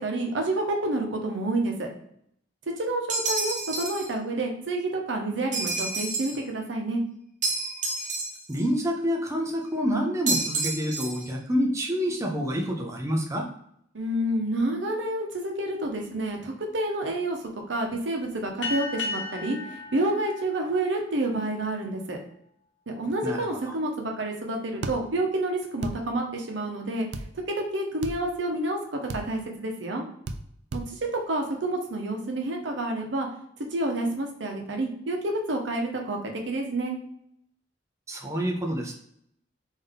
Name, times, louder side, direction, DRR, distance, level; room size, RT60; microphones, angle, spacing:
voice 1, 0.0-1.9 2.8-7.0 13.9-17.4 17.7-22.2 23.0-27.1 27.5-30.0 30.7-33.3 33.7-37.0, right 2 dB, 85° right, 2 dB, 0.8 m, -29 dB
sound 1, 3.1-4.1 5.5-6.4 7.4-8.6 10.3-11.3, right 3 dB, 45° right, 1.0 m, -29 dB
voice 2, 8.5-13.5 23.2-23.7 38.1-39.0, equal, 15° right, 1 dB, 0.5 m, -28 dB
sound 2, 18.6-21.6, left 3 dB, 90° left, 0.9 m, -35 dB
sound 3, 24.8-25.0 25.8-26.0 27.1-27.3 28.0-28.2 29.1-29.2 30.3-30.4 30.7-30.9, right 2 dB, 70° right, 0.4 m, -33 dB
3.5 x 2.7 x 3.7 m, 0.71 s
head